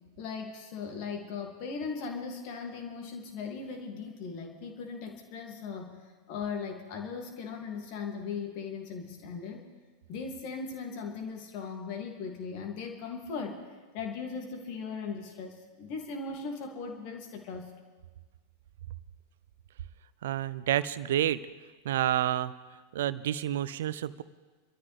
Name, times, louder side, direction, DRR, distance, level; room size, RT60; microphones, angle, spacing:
voice 1, 0.2-6.0 6.3-9.7 10.1-13.6 13.9-17.7, left 5 dB, 45° left, 2 dB, 2.4 m, -38 dB
voice 2, 20.2-21.4 21.8-22.5 22.9-24.2, right 12 dB, 55° right, 17 dB, 0.6 m, -29 dB
27.0 x 13.0 x 3.4 m, 1.3 s
figure-of-eight pair, 90°, 0 cm